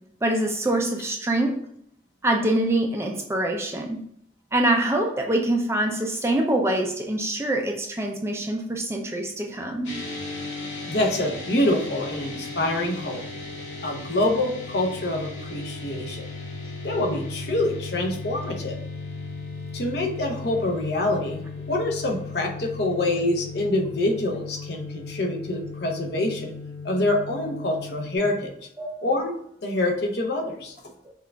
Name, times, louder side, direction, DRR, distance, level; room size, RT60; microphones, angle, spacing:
voice 1, 0.2-1.6 2.2-4.0 4.5-10.0 28.8-28.9 31.1-31.2, right 1 dB, 15° right, 2 dB, 0.4 m, -24 dB
sound 1, 9.8-28.2, left 3 dB, 80° left, 1.7 m, -36 dB
voice 2, 10.9-13.2 13.8-16.3 16.8-18.8 19.7-26.5 26.8-28.5 29.0-29.3 29.6-30.7, left 1 dB, 60° left, 1 dB, 0.9 m, -26 dB
5.6 x 2.5 x 3.4 m, 0.70 s
head